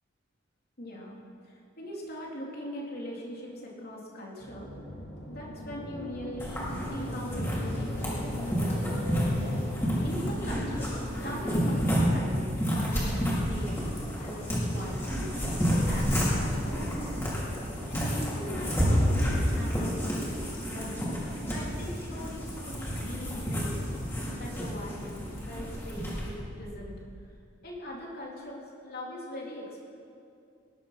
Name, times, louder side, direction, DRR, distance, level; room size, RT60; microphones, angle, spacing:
voice 1, 0.8-5.0 5.3-9.6 10.0-14.4 14.7-15.3 15.7-17.3 17.9-20.2 20.7-23.9 24.3-27.3 27.6-29.8, left 1 dB, 50° left, -3 dB, 3.4 m, -41 dB
sound 1, 4.4-11.0, equal, 75° left, 2.8 m, -39 dB
sound 2, 6.4-26.3, equal, 10° left, 4.4 m, -30 dB
19.5 x 11.5 x 5.9 m, 2.5 s
head